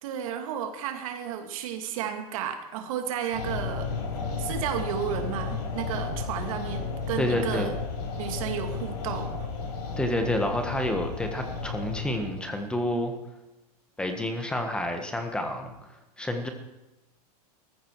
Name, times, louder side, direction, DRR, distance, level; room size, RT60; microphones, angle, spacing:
voice 1, 0.0-3.9 4.4-7.7 8.2-9.5, right 9 dB, 60° right, 6 dB, 2.4 m, -33 dB
sound 1, 3.3-12.5, left 4 dB, 85° left, 4.5 m, -33 dB
voice 2, 7.2-7.7 10.0-13.1 14.0-15.7 16.2-16.5, left 1 dB, 5° left, 5 dB, 1.5 m, -29 dB
17.5 x 14.5 x 4.7 m, 0.99 s
supercardioid pair, 160°, 20 cm